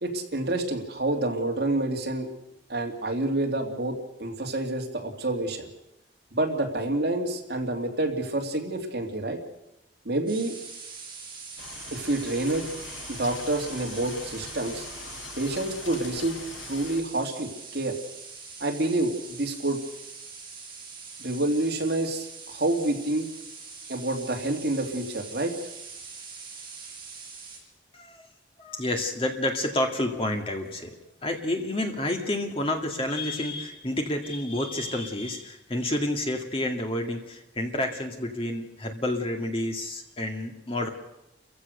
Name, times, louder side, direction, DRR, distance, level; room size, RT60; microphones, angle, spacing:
voice 1, 0.0-2.3 2.7-5.7 6.3-9.4 10.0-10.6 11.9-12.7 13.1-14.8 15.4-16.4 16.7-18.0 18.6-19.8 21.2-23.3 23.9-25.5, right 2 dB, 55° right, 2 dB, 2.8 m, -28 dB
sound 1, 10.3-27.6, right 5 dB, 25° right, 6.0 m, -43 dB
sound 2, 11.6-17.0, left 4 dB, 80° left, 1.9 m, -42 dB
voice 2, 28.6-31.0 31.2-40.9, left 1 dB, 30° left, 3 dB, 2.1 m, -29 dB
29.5 x 15.5 x 6.6 m, 0.90 s
head